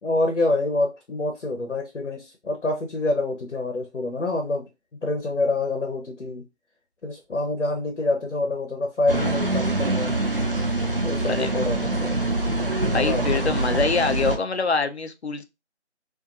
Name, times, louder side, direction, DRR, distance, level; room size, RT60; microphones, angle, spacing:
voice 1, 0.0-4.6 5.0-6.4 7.0-10.2 11.0-12.1 12.8-13.5, left 2 dB, 85° left, 0.8 m, -26 dB
sound 1, 9.1-14.4, right 2 dB, 50° right, 0.5 m, -24 dB
voice 2, 12.9-15.4, left 4 dB, 65° left, 0.5 m, -24 dB
2.5 x 2.4 x 2.4 m
figure-of-eight pair, 180°, 36 cm